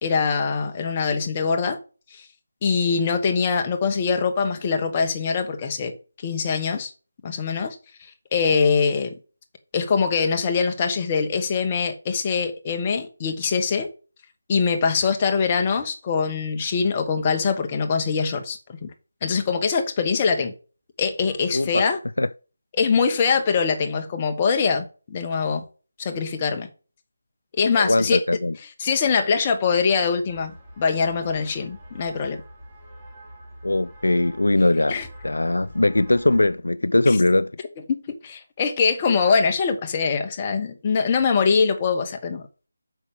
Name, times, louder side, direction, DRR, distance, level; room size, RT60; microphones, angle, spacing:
voice 1, 0.0-1.8 2.1-2.3 2.6-5.9 6.2-6.9 7.2-9.2 9.7-13.9 14.5-18.9 19.2-20.5 21.0-22.0 22.7-25.6 26.0-26.7 27.6-28.2 28.8-32.4 34.9-35.1 37.1-37.2 37.9-42.4, left 5 dB, 25° left, 1.3 m, -23 dB
voice 2, 21.5-21.8 22.2-22.3 27.8-28.5 33.6-35.0 35.2-37.5, left 2 dB, 80° left, 0.4 m, -20 dB
sound 1, 30.3-36.5, equal, 10° right, 4.0 m, -45 dB
6.2 x 5.8 x 7.1 m
figure-of-eight pair, 160°, 0 cm